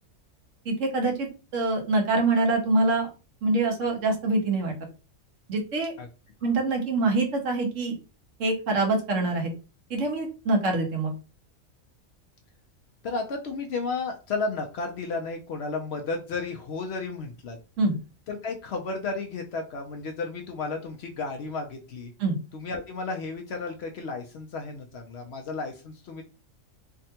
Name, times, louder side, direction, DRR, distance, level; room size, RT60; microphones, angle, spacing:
voice 1, 0.6-1.3 1.5-3.1 3.4-4.7 5.5-5.9 6.4-8.0 8.4-9.5 9.9-11.1 17.8-18.0 22.2-22.4, right 2 dB, 70° right, 2 dB, 1.2 m, -25 dB
voice 2, 13.0-17.6 18.3-22.1 22.5-26.2, left 3 dB, 65° left, 3 dB, 0.7 m, -33 dB
3.4 x 2.2 x 2.8 m, 0.33 s
omnidirectional pair, 1.4 m